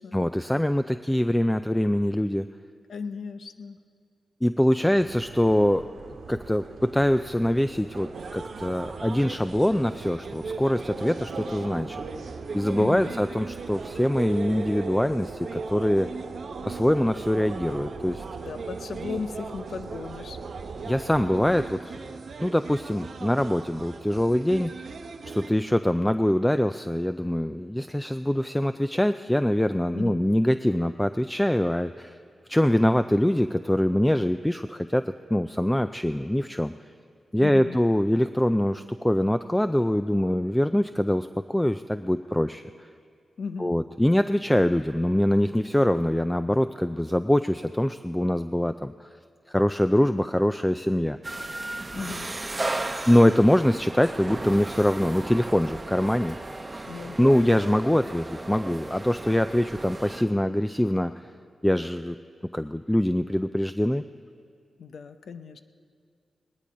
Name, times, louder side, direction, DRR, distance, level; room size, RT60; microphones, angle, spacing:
voice 1, 0.1-2.5 4.4-5.8 6.3-12.0 12.5-16.1 16.7-18.2 20.9-22.0 22.4-24.8 25.2-32.2 32.5-36.7 37.3-42.6 43.6-49.1 49.5-51.2 53.1-56.4 57.2-61.2 61.6-62.2 62.5-64.0, left 1 dB, 10° left, 10 dB, 0.3 m, -24 dB
voice 2, 2.9-3.8 12.8-13.1 18.4-20.4 29.9-30.3 37.4-37.8 43.4-43.8 51.9-52.3 56.9-58.1 64.8-65.6, left 5 dB, 80° left, 10 dB, 0.7 m, -36 dB
sound 1, 4.9-21.7, right 4 dB, 85° right, 1.1 m, -40 dB
sound 2, 8.1-25.5, right 4 dB, 65° right, 0.8 m, -39 dB
sound 3, 51.2-60.2, right 2 dB, 25° right, 0.8 m, -35 dB
18.5 x 11.0 x 5.1 m, 2.2 s
cardioid pair, 75°, 0 cm